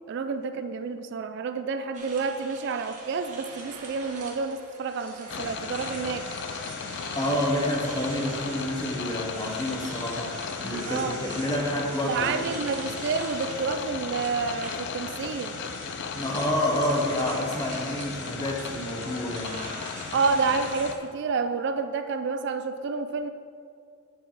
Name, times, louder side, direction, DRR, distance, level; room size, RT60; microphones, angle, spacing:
voice 1, 0.1-6.3 10.9-11.2 12.1-15.6 20.1-23.3, right 4 dB, 50° right, 9 dB, 0.3 m, -29 dB
sound 1, 1.9-21.0, right 3 dB, 35° right, 1.5 m, -43 dB
sound 2, 5.3-20.9, left 6 dB, 50° left, 0.4 m, -36 dB
voice 2, 7.1-12.6 16.1-19.6, left 1 dB, 15° left, -1 dB, 1.1 m, -29 dB
8.1 x 7.1 x 4.0 m, 2.3 s
head